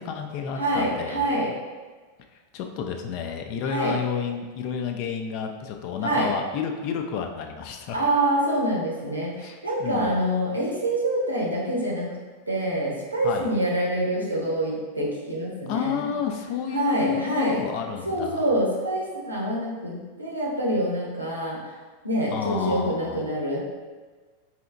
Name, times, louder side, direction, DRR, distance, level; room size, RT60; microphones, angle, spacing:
voice 1, 0.0-1.2 2.5-8.0 9.4-10.1 13.2-13.5 15.7-18.5 22.3-23.3, left 7 dB, 45° left, 4 dB, 0.4 m, -30 dB
voice 2, 0.6-1.5 3.7-4.0 6.0-6.3 7.9-12.1 12.5-16.0 16.7-17.6 18.0-21.6 22.0-23.6, right 1 dB, 85° right, -4 dB, 0.9 m, -26 dB
4.8 x 2.8 x 2.5 m, 1.4 s
figure-of-eight pair, 90°, 0 cm